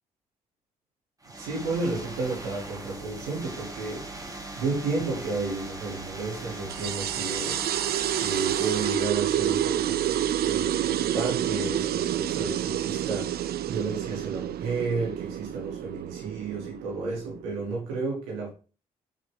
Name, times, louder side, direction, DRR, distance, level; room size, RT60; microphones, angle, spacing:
sound 1, 1.2-9.2, right 2 dB, 20° right, 2.0 m, -40 dB
voice 1, 1.4-4.0 4.6-18.5, right 3 dB, 85° right, 2.8 m, -32 dB
sound 2, 6.7-17.7, right 11 dB, 65° right, 0.6 m, -28 dB
7.0 x 6.6 x 3.7 m
hypercardioid pair, 50°, 18 cm